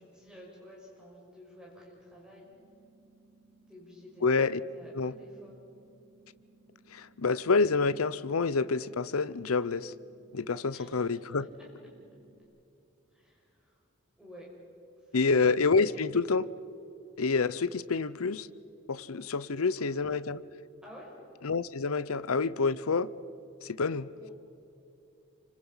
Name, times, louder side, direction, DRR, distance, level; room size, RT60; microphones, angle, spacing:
voice 1, 0.0-2.5 3.7-4.2 4.6-5.6 10.7-11.2 11.6-11.7 13.1-13.8 14.2-14.5 15.0-15.4 19.5-20.2 20.8-21.2 24.2-24.3, left 1 dB, 5° right, 6.0 m, -51 dB
sound 1, 2.4-12.4, right 3 dB, 35° right, 7.7 m, -63 dB
voice 2, 4.2-4.6 4.9-5.1 6.9-9.9 10.3-11.5 15.1-16.5 17.2-18.5 18.9-20.4 21.4-23.1 23.6-24.1, left 4 dB, 90° left, 0.7 m, -28 dB
29.0 x 25.5 x 5.7 m
head